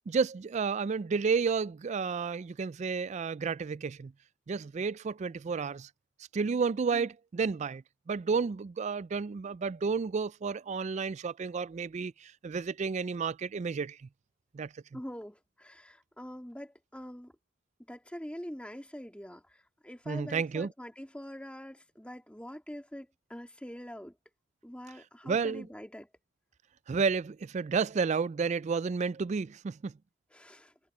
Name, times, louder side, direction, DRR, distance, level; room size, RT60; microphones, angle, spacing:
voice 1, 0.1-4.1 4.5-5.9 6.3-14.1 14.5-14.7 20.1-20.7 25.2-25.7 26.9-29.9, right 5 dB, 35° right, 0.3 m, -31 dB
voice 2, 14.9-17.3 17.9-24.2 24.6-26.1 30.3-30.7, equal, 5° left, 2.2 m, -44 dB
head